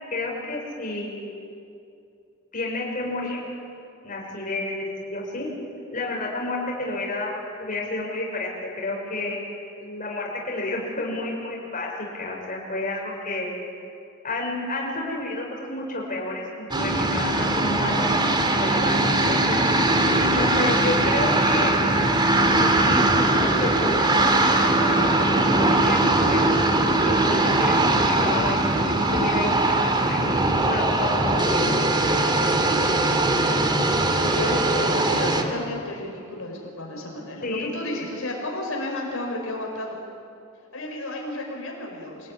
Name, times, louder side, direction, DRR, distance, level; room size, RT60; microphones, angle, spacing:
voice 1, 0.1-1.4 2.5-3.4 4.0-5.5 5.9-9.4 9.8-11.9 12.2-13.5 14.2-19.6 20.3-21.8 22.6-27.7 28.1-28.6 29.0-30.2 30.7-31.7 37.4-37.7 37.9-38.0, left 2 dB, 40° left, -2 dB, 6.1 m, -30 dB
sound 1, 16.7-35.4, right 2 dB, 20° right, 2.3 m, -21 dB
voice 2, 34.1-40.0 40.7-42.3, left 1 dB, 75° left, -1 dB, 5.1 m, -32 dB
27.5 x 19.5 x 9.8 m, 2.5 s
head